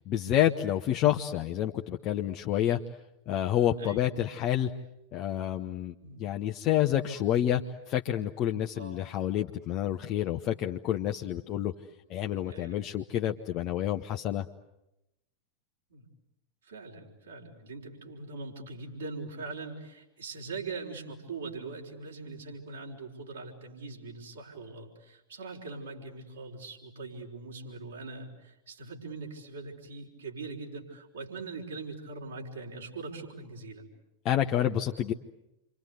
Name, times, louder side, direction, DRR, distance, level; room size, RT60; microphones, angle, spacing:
voice 1, 0.0-2.8 3.3-4.7 5.1-7.6 7.9-11.7 12.1-14.5 34.2-35.1, left 11 dB, 35° left, 4 dB, 1.0 m, -28 dB
voice 2, 12.5-12.9 15.9-16.1 16.6-33.9, right 3 dB, 70° right, -2 dB, 5.0 m, -42 dB
28.5 x 25.0 x 8.2 m, 0.90 s
figure-of-eight pair, 90°, 0 cm